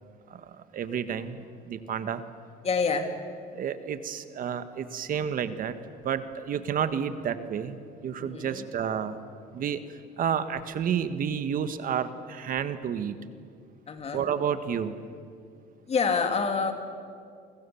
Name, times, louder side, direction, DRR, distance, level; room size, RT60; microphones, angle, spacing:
voice 1, 0.3-2.2 3.5-5.7 6.0-9.2 9.5-13.2 14.1-15.0, right 8 dB, 55° right, 11 dB, 1.5 m, -30 dB
voice 2, 2.6-3.1 8.2-8.6 13.9-14.3 15.9-16.7, left 5 dB, 40° left, 6 dB, 2.9 m, -27 dB
29.0 x 23.5 x 7.1 m, 2.3 s
cardioid pair, 110°, 17 cm